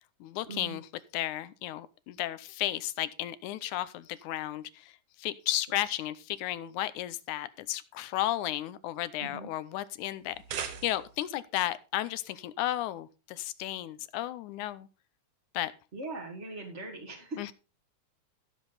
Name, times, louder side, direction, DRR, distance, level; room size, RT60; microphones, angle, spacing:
voice 1, 0.2-4.9 5.2-14.9 15.5-15.7 17.4-17.5, left 14 dB, 85° left, 16 dB, 2.2 m, -34 dB
sound 1, 10.2-11.3, right 8 dB, 60° right, 1.9 m, -39 dB
voice 2, 15.9-17.4, right 3 dB, 25° right, -1 dB, 1.8 m, -40 dB
15.0 x 7.4 x 4.0 m, 0.31 s
omnidirectional pair, 3.5 m